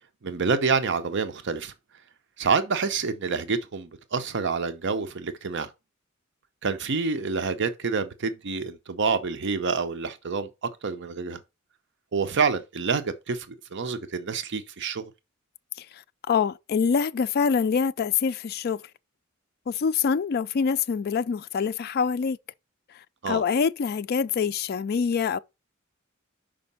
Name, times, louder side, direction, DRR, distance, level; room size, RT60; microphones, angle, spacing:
voice 1, 0.2-1.7 2.4-5.7 6.6-11.4 12.1-15.1 23.2-23.4, right 5 dB, 60° right, 0.7 m, -27 dB
voice 2, 16.3-18.8 19.7-22.4 23.3-25.4, left 6 dB, 50° left, 0.4 m, -25 dB
5.3 x 5.0 x 5.4 m
head